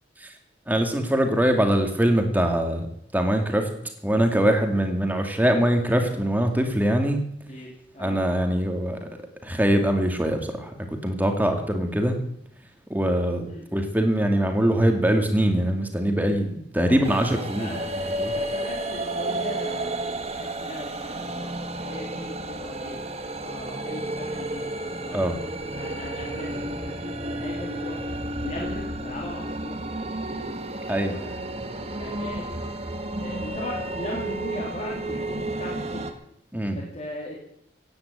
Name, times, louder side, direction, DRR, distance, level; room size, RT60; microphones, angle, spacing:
voice 1, 0.7-2.9 3.1-3.7 4.0-7.2 8.0-9.1 9.4-10.7 11.0-12.2 12.9-17.8 18.0-18.3 25.1-25.4 30.9-31.2 36.5-36.8, right 1 dB, 10° right, 4 dB, 2.3 m, -23 dB
voice 2, 7.5-8.5 13.4-13.7 16.9-17.9 18.3-21.5 21.7-24.6 25.0-25.2 25.7-27.9 28.4-30.6 31.0-32.5 33.2-36.1 36.7-37.4, left 1 dB, 35° left, -3 dB, 3.3 m, -39 dB
sound 1, 17.0-36.1, right 1 dB, 35° right, 1.7 m, -32 dB
16.5 x 9.7 x 8.4 m, 0.74 s
head